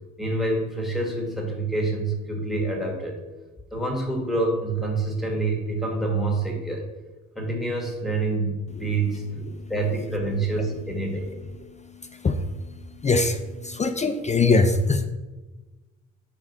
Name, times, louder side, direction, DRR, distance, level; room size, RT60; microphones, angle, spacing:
voice 1, 0.2-3.2 3.7-6.8 7.3-9.2 9.7-11.3, right 2 dB, ahead, 0 dB, 1.5 m, -27 dB
voice 2, 12.0-12.5 13.0-15.1, left 3 dB, 25° left, 8 dB, 0.4 m, -22 dB
4.8 x 3.8 x 5.5 m, 1.2 s
cardioid pair, 90°, 30 cm